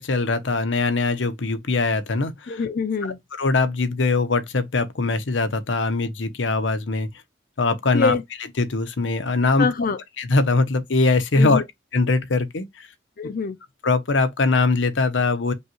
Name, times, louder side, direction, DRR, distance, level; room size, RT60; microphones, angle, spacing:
voice 1, 0.0-2.6 3.0-7.1 7.6-8.1 8.6-9.7 10.2-11.6 11.9-12.9 13.8-15.5, left 3 dB, 85° left, 0.8 m, -22 dB
voice 2, 2.5-3.2 7.9-8.2 9.6-10.0 11.4-11.6 13.2-13.6, left 5 dB, 50° left, 0.5 m, -24 dB
5.3 x 2.3 x 3.0 m
head